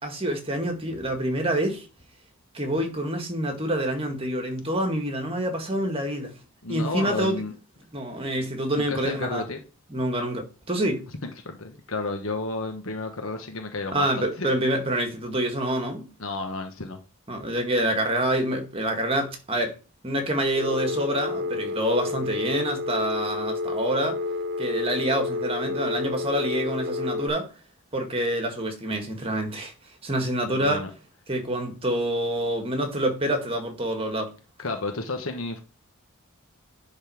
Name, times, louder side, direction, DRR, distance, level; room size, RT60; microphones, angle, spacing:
voice 1, 0.0-1.8 2.5-6.3 6.7-7.4 7.9-9.4 9.9-11.1 13.9-16.1 17.3-19.8 20.0-24.2 24.6-27.5 27.9-29.7 30.0-30.8 31.3-34.3, right 1 dB, 25° right, 1.8 m, -27 dB
voice 2, 6.6-7.5 8.7-9.6 11.4-14.5 16.2-17.0 30.5-30.9 34.6-35.6, left 3 dB, 60° left, 1.2 m, -32 dB
Telephone, 20.6-27.3, left 3 dB, 40° right, 1.1 m, -30 dB
10.5 x 3.9 x 4.8 m
head